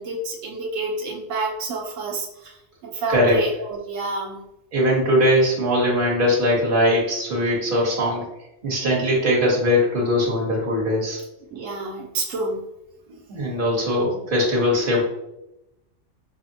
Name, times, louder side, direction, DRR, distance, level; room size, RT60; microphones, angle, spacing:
voice 1, 0.0-2.5 2.8-4.4 11.5-12.6, right 3 dB, 85° right, -1 dB, 1.1 m, -28 dB
voice 2, 4.7-8.2 8.6-11.2 13.3-15.0, left 1 dB, 45° right, -3 dB, 1.4 m, -20 dB
5.7 x 2.1 x 2.7 m, 0.87 s
omnidirectional pair, 1.3 m